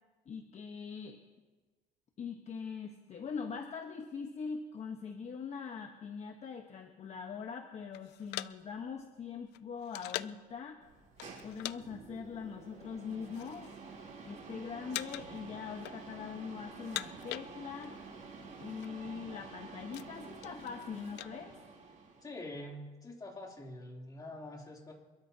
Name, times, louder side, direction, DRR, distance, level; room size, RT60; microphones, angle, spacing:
voice 1, 0.3-1.2 2.2-10.8 11.4-13.8 14.2-18.0 18.6-21.6, left 6 dB, 40° left, 4 dB, 1.1 m, -42 dB
sound 1, 7.9-10.5 11.2-11.8 12.1-12.3 12.9-13.7 14.0-14.5 14.9-15.4 15.7-16.3 16.7-18.0 18.3-18.4 18.6-18.9 19.4-21.3, left 17 dB, 85° left, 0.4 m, -43 dB
sound 2, 10.8-22.4, right 4 dB, 45° right, 5.2 m, -50 dB
voice 2, 22.2-24.9, left 1 dB, 20° left, -1 dB, 3.1 m, -45 dB
28.0 x 13.0 x 2.8 m, 1.3 s
cardioid pair, 110°, 17 cm